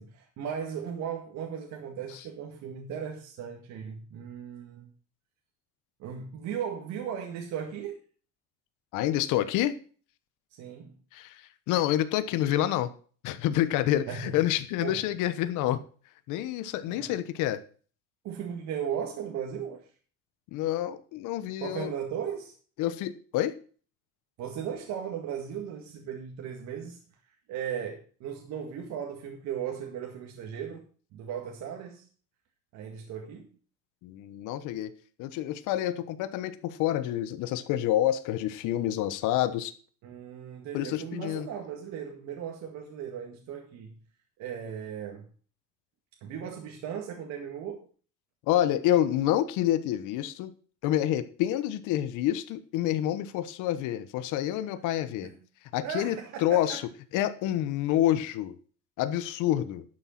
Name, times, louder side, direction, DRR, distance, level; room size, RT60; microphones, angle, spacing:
voice 1, 0.0-4.9 6.0-8.0 10.5-11.0 14.1-14.4 14.8-15.0 16.9-17.1 18.2-19.9 21.6-22.5 24.4-27.0 27.5-30.9 31.1-32.1 32.7-33.5 40.0-44.0 44.4-45.3 46.2-47.9 55.2-55.3 55.8-56.8, right 8 dB, 65° right, 2 dB, 1.9 m, -37 dB
voice 2, 8.9-9.7 11.1-12.9 13.2-15.8 16.3-17.6 20.5-21.9 22.8-23.5 34.0-34.9 35.2-39.7 40.7-41.5 48.5-50.5 50.8-55.3 55.7-56.8 57.1-58.6 59.0-59.8, left 12 dB, 75° left, 12 dB, 1.1 m, -28 dB
12.0 x 6.7 x 5.8 m, 0.41 s
cardioid pair, 160°, 31 cm